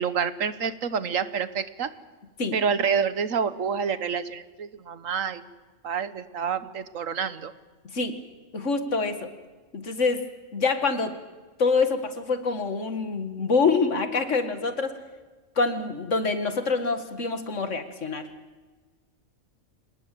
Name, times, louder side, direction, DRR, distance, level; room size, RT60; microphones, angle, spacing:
voice 1, 0.0-1.9 2.5-5.4 5.8-7.5, right 6 dB, 85° right, 13 dB, 1.5 m, -28 dB
voice 2, 8.5-9.3 9.7-10.2 10.5-11.1 11.6-14.9 15.6-18.3, left 4 dB, 70° left, 8 dB, 2.1 m, -25 dB
26.0 x 19.5 x 7.7 m, 1.3 s
omnidirectional pair, 1.3 m